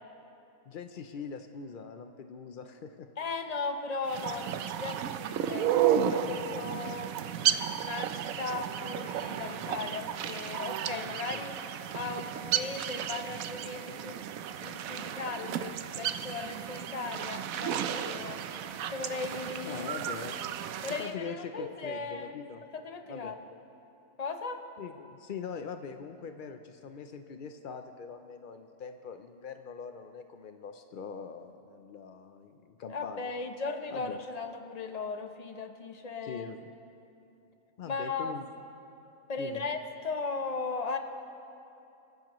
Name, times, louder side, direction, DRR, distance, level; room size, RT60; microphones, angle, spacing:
voice 1, 0.7-3.1 10.8-11.5 19.6-20.4 21.0-22.6 23.1-23.4 24.8-33.3 33.9-34.2 36.2-36.7 37.8-38.5 39.4-39.6, left 6 dB, 80° left, 7 dB, 0.4 m, -42 dB
voice 2, 3.2-7.2 7.4-11.5 11.9-14.3 14.6-18.4 18.9-19.9 20.8-22.4 22.7-23.4 24.2-24.6 32.9-36.5 37.8-38.3 39.3-41.0, left 4 dB, 35° left, 6 dB, 0.7 m, -37 dB
sound 1, 4.1-21.1, right 9 dB, 70° right, 1.0 m, -33 dB
26.0 x 14.5 x 3.0 m, 2.8 s
omnidirectional pair, 1.6 m